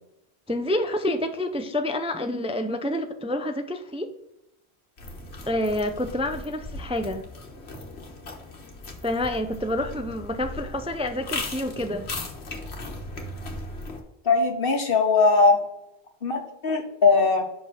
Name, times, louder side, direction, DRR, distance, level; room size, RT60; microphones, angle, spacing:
voice 1, 0.5-4.1 5.4-7.2 9.0-12.1, left 1 dB, 10° right, 7 dB, 0.3 m, -28 dB
sound 1, 5.0-14.0, left 2 dB, 75° left, 1.5 m, -37 dB
voice 2, 14.2-15.6 16.2-17.4, left 4 dB, 60° left, 4 dB, 1.4 m, -20 dB
5.8 x 5.3 x 6.8 m, 0.85 s
omnidirectional pair, 1.1 m